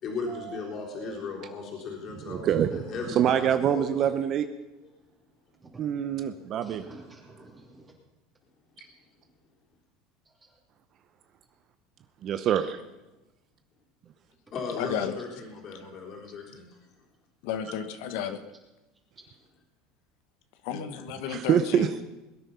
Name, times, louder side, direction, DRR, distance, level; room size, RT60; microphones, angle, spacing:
voice 1, 0.0-4.2 14.5-16.8, left 4 dB, 45° left, -1 dB, 3.8 m, -37 dB
voice 2, 2.2-2.8 3.2-4.4 5.8-6.8 12.2-12.8 21.3-22.0, right 9 dB, 45° right, 10 dB, 0.8 m, -25 dB
voice 3, 5.9-7.9 10.2-10.6, right 2 dB, 20° right, -1 dB, 3.1 m, -51 dB
voice 4, 14.8-15.1 17.4-18.4 20.6-21.9, left 8 dB, 75° left, 9 dB, 1.2 m, -32 dB
21.0 x 9.2 x 5.6 m, 1.0 s
supercardioid pair, 120°, 0 cm